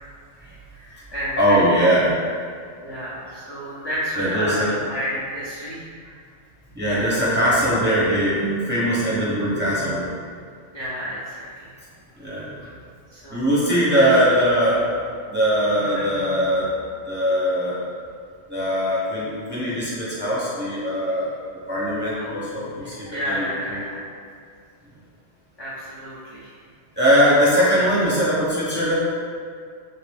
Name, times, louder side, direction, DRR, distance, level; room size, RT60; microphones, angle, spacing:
voice 1, 0.7-1.8 2.8-6.2 6.8-7.5 10.7-11.7 12.1-12.2 12.6-12.8 13.1-14.2 15.8-16.0 21.1-21.2 22.2-24.0 25.6-26.5, equal, 30° left, -9 dB, 0.4 m, -31 dB
voice 2, 1.4-2.1 4.2-4.7 6.7-10.0 12.2-12.5 13.3-14.9 15.3-16.7 17.1-17.8 18.5-21.3 21.7-23.8 27.0-28.9, equal, 10° right, -9 dB, 0.6 m, -21 dB
3.6 x 2.5 x 3.4 m, 2.1 s
omnidirectional pair, 1.3 m